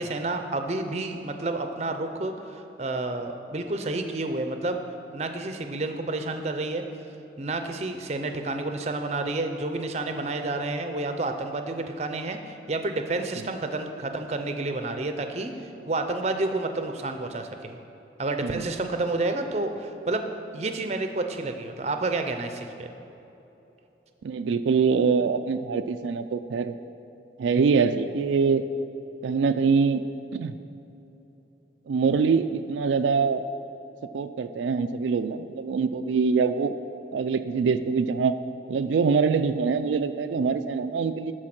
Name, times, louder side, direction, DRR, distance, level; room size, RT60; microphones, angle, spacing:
voice 1, 0.0-4.8 5.1-6.8 7.4-15.5 15.9-17.8 18.2-20.3 20.5-22.9, right 2 dB, 35° right, 6 dB, 0.6 m, -30 dB
voice 2, 24.2-26.8 27.4-28.6 29.2-30.0 30.3-30.5 31.9-33.4 34.1-36.7 37.1-38.3 38.7-41.3, right 5 dB, 85° right, 9 dB, 0.3 m, -24 dB
12.5 x 4.6 x 5.9 m, 3.0 s
head